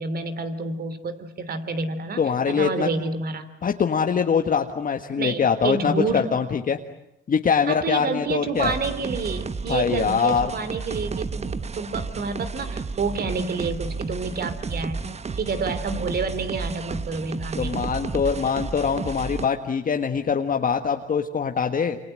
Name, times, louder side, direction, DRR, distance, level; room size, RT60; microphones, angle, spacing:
voice 1, 0.0-3.5 5.2-6.4 7.7-15.0 15.4-17.8, right 4 dB, 50° right, 11 dB, 3.3 m, -29 dB
voice 2, 2.2-2.9 3.6-6.8 7.3-8.7 9.7-10.5 17.6-22.0, left 6 dB, 45° left, 5 dB, 1.6 m, -23 dB
sound 1, 8.6-19.5, right 4 dB, 35° right, 1.2 m, -32 dB
28.0 x 26.5 x 7.7 m, 0.83 s
cardioid pair, 90°, 20 cm